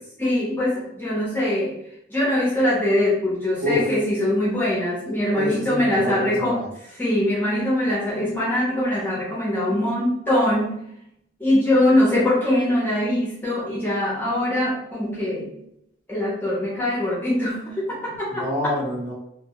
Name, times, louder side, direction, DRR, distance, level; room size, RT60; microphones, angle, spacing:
voice 1, 0.2-1.8 2.1-6.6 6.9-10.8 11.4-15.5 16.1-18.4, left 1 dB, 10° left, -7 dB, 0.6 m, -22 dB
voice 2, 3.6-3.9 5.3-6.7 18.2-19.1, left 1 dB, 40° right, -5 dB, 0.9 m, -26 dB
2.2 x 2.2 x 2.9 m, 0.77 s
head